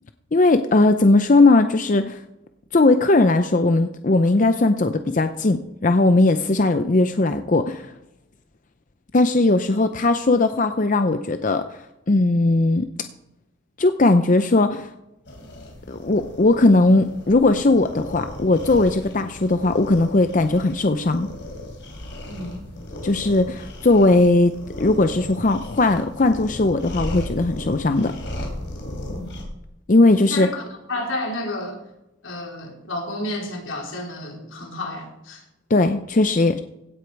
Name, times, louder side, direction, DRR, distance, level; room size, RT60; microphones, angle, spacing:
voice 1, 0.3-2.2 2.7-7.9 9.1-11.6 12.1-12.9 13.8-14.9 15.9-21.3 23.0-28.1 29.9-30.5 35.7-36.6, left 2 dB, 40° left, 9 dB, 0.6 m, -18 dB
sound 1, 15.3-29.4, left 1 dB, 60° left, 3.5 m, -36 dB
voice 2, 22.3-22.7 29.1-29.4 30.3-30.6 30.9-31.8 32.2-35.4, left 1 dB, 85° left, 0 dB, 3.5 m, -31 dB
16.5 x 8.3 x 4.7 m, 0.90 s
head